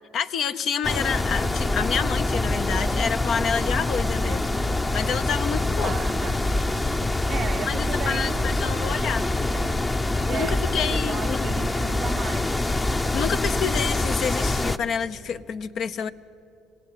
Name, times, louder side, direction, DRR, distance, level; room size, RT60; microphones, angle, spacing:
voice 1, 0.1-5.9 7.7-9.3 10.3-11.5 13.1-16.1, left 7 dB, 60° left, 0.9 m, -28 dB
sound 1, 0.8-14.8, left 2 dB, 20° left, 0.8 m, -25 dB
voice 2, 5.8-6.4 7.3-9.1 9.4-9.7 10.3-12.5, right 8 dB, 50° right, 0.5 m, -36 dB
26.5 x 17.0 x 9.9 m
supercardioid pair, 80°, 0 cm